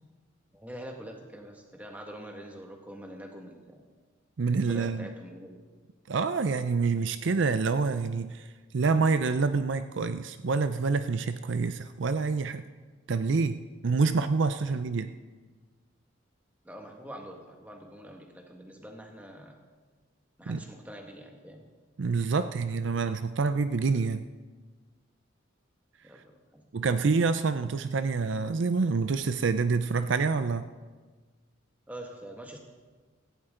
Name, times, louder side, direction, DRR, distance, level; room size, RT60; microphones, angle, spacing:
voice 1, 0.5-3.8 4.7-5.8 14.6-14.7 16.6-19.6 20.4-21.6 26.0-26.6 31.9-32.6, equal, 10° right, 2 dB, 1.6 m, -45 dB
voice 2, 4.4-5.1 6.1-8.5 8.7-12.6 13.1-13.6 13.8-15.1 20.5-20.6 22.0-24.2 26.7-30.7, right 4 dB, 65° right, 11 dB, 0.5 m, -27 dB
17.0 x 15.5 x 3.8 m, 1.4 s
head